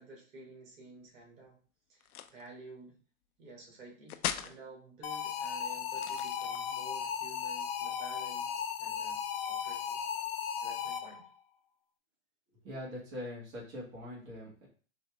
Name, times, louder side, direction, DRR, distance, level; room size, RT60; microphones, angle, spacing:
voice 1, 0.0-1.6 1.9-3.0 3.4-10.0 10.6-11.3, right 3 dB, 65° right, -2 dB, 2.3 m, -52 dB
sound 1, 2.0-2.5 4.1-4.6 5.9-6.8, left 10 dB, 90° left, 0.6 m, -38 dB
sound 2, 5.0-11.3, left 8 dB, 45° left, 0.5 m, -36 dB
voice 2, 12.6-14.7, left 1 dB, 25° right, -6 dB, 2.0 m, -42 dB
4.4 x 3.2 x 3.6 m, 0.40 s
hypercardioid pair, 145°, 42 cm